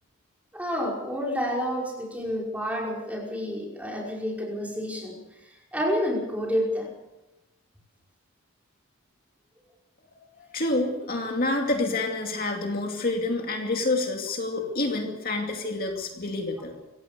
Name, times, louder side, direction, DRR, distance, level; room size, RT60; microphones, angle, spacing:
voice 1, 0.5-6.9, equal, 5° right, -2 dB, 5.5 m, -29 dB
voice 2, 10.4-16.7, left 2 dB, 40° left, 2 dB, 2.5 m, -28 dB
26.0 x 17.0 x 6.8 m, 0.97 s
head